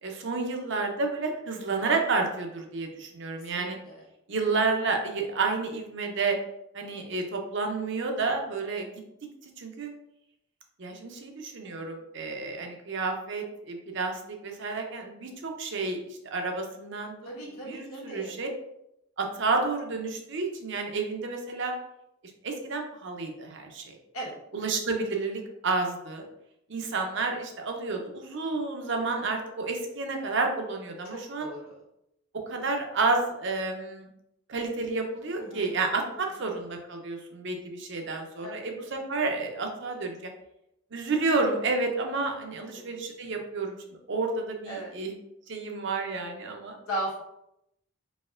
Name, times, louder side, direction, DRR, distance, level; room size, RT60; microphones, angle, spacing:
voice 1, 0.0-3.8 4.3-6.4 6.7-9.0 9.4-9.9 10.8-16.0 16.3-17.3 17.6-18.5 19.2-21.7 22.4-24.0 24.5-26.2 26.7-31.5 32.5-34.1 34.5-40.3 40.9-45.1 45.5-46.8, right 3 dB, 55° right, 3 dB, 0.6 m, -30 dB
voice 2, 3.5-4.0 17.2-18.3 24.1-24.3 31.0-31.8 35.4-35.7 38.4-38.7 42.6-42.9 44.6-44.9 46.9-47.2, right 1 dB, 85° left, -4 dB, 1.3 m, -37 dB
4.1 x 2.9 x 2.4 m, 0.82 s
head